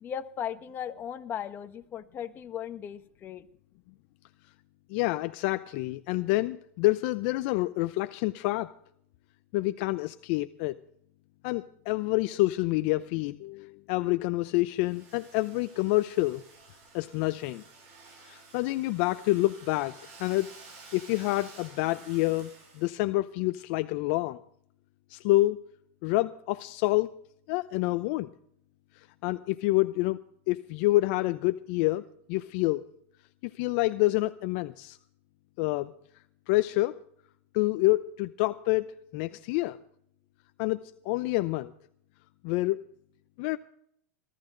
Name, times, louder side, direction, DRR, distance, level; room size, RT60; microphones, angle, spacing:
voice 1, 0.0-3.4, left 9 dB, 30° left, 8 dB, 1.2 m, -37 dB
voice 2, 4.9-8.7 9.5-10.8 11.4-16.4 16.9-17.6 18.3-20.5 20.9-24.4 25.1-25.6 26.0-27.1 27.5-28.3 29.2-30.2 30.5-32.8 33.4-35.0 35.6-35.9 36.5-37.0 37.5-39.8 40.6-41.7 42.4-42.8 43.4-43.6, left 19 dB, 55° left, 11 dB, 0.6 m, -27 dB
Domestic sounds home sounds, 14.8-23.0, right 4 dB, 55° right, 7.1 m, -52 dB
21.0 x 13.0 x 3.9 m, 0.65 s
supercardioid pair, 135°, 7 cm